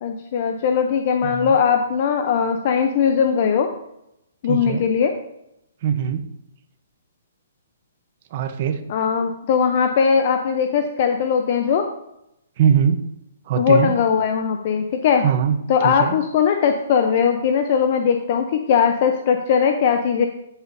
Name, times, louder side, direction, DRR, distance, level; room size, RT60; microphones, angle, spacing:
voice 1, 0.0-3.7 4.4-5.1 8.9-11.8 13.6-15.2 15.7-20.3, left 7 dB, 35° left, 5 dB, 0.5 m, -19 dB
voice 2, 1.2-1.6 4.5-4.8 5.8-6.2 8.3-8.8 12.6-13.0 13.5-13.9 15.2-15.6 15.8-16.1, right 8 dB, 35° right, 7 dB, 0.7 m, -21 dB
8.0 x 7.9 x 2.6 m, 0.84 s
hypercardioid pair, 175°, 0 cm